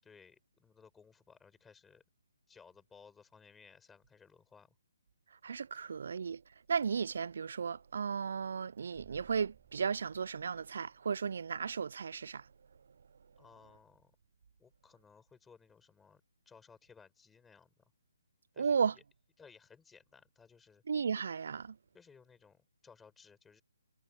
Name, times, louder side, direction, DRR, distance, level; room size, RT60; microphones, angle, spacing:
voice 1, 0.0-2.0 2.5-4.7 13.4-14.2 14.6-16.2 16.5-17.9 18.5-19.0 19.4-20.8 21.9-23.6, left 5 dB, 5° left, 7.5 m, -60 dB
voice 2, 5.4-6.4 6.7-12.4 18.6-18.9 20.9-21.8, right 6 dB, 55° right, 0.3 m, -34 dB
sound 1, 8.9-11.4, right 15 dB, 15° right, 7.9 m, -64 dB
figure-of-eight pair, 140°, 0 cm